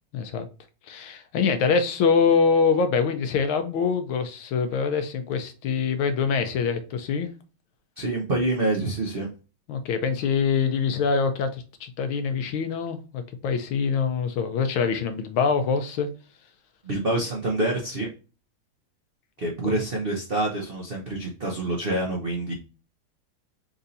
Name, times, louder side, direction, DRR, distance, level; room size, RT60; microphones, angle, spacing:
voice 1, 0.1-0.5 0.9-7.3 9.7-16.1 19.6-19.7, left 5 dB, 80° left, 1.5 m, -24 dB
voice 2, 8.0-9.3 16.8-18.1 19.4-22.5, right 2 dB, 75° right, 0.5 m, -27 dB
4.6 x 4.1 x 2.6 m
omnidirectional pair, 2.3 m